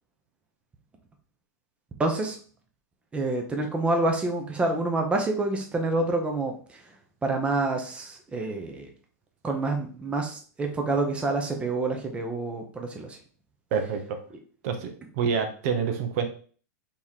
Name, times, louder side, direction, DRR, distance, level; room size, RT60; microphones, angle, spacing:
voice 1, 2.0-2.4 3.1-6.8 7.2-8.9 9.4-13.2, right 2 dB, 10° right, 3 dB, 0.8 m, -27 dB
voice 2, 13.7-14.2 14.6-14.9 15.2-16.3, right 6 dB, 55° right, 6 dB, 0.8 m, -27 dB
4.2 x 3.1 x 3.6 m, 0.43 s
hypercardioid pair, 130°, 9 cm